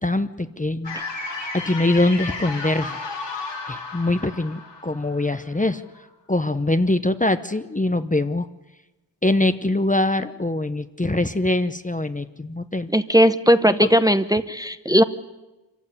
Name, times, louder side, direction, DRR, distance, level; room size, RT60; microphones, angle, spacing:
voice 1, 0.0-1.0 1.3-3.0 3.7-5.8 6.3-8.5 9.2-12.9 13.7-13.9, left 2 dB, 20° left, 11 dB, 0.8 m, -23 dB
sound 1, 0.8-5.9, left 3 dB, 90° left, 5.0 m, -33 dB
voice 2, 12.9-15.0, equal, 10° right, 11 dB, 0.9 m, -17 dB
25.5 x 15.5 x 9.9 m, 1.1 s
wide cardioid pair, 85°, 42 cm